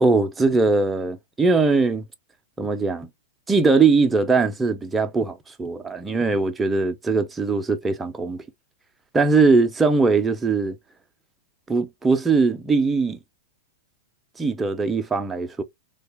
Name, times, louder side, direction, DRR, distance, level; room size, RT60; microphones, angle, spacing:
voice 1, 0.0-2.0 2.6-3.1 3.5-8.4 9.1-10.8 11.7-13.2 14.4-15.6, right 4 dB, 10° right, 0.5 m, -20 dB
3.2 x 2.2 x 3.2 m
hypercardioid pair, 150°, 0 cm